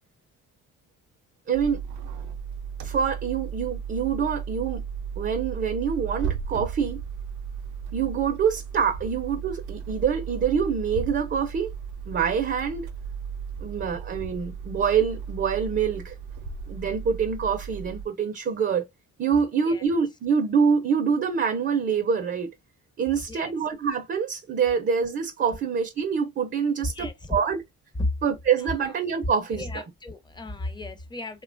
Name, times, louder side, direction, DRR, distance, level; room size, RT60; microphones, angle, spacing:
voice 1, 1.5-1.8 2.8-4.8 5.2-7.0 7.9-11.7 12.1-12.9 13.6-16.2 16.7-18.8 19.2-22.5 23.0-27.6 28.2-29.6, right 6 dB, 35° right, 0.5 m, -25 dB
sound 1, 1.5-18.1, right 7 dB, 80° right, 0.6 m, -35 dB
voice 2, 26.8-27.4 28.0-28.1 28.6-29.0 29.5-31.4, left 2 dB, 15° left, 0.6 m, -33 dB
2.9 x 2.2 x 2.4 m
cardioid pair, 90°, 30 cm